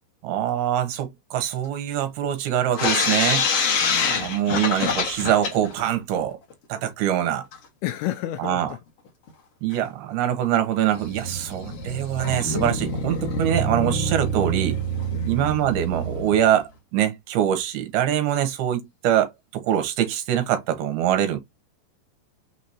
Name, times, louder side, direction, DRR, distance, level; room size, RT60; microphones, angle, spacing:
voice 1, 0.2-3.4 4.0-6.4 6.7-7.4 8.4-8.7 9.6-14.8 15.3-21.4, right 11 dB, 75° right, 2.6 m, -24 dB
sound 1, 2.7-5.8 6.2-6.3 6.5-6.6 7.5-7.6 8.7-8.8 9.3-9.4 9.7-9.8 10.9-16.5, left 2 dB, 60° left, 1.6 m, -26 dB
voice 2, 3.8-4.3 7.8-8.8 11.7-11.8 15.1-15.4, left 14 dB, 80° left, 2.4 m, -32 dB
6.4 x 2.9 x 2.6 m
omnidirectional pair, 5.0 m